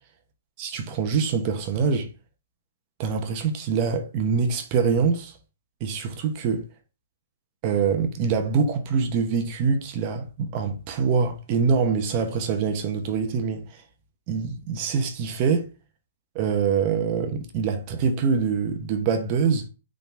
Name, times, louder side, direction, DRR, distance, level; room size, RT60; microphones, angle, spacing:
voice 1, 0.6-2.1 3.0-5.4 5.8-6.7 7.6-13.8 14.3-15.7 16.3-19.7, right 5 dB, 35° right, 1.1 m, -24 dB
5.8 x 3.9 x 5.9 m
hypercardioid pair, 160°, 0 cm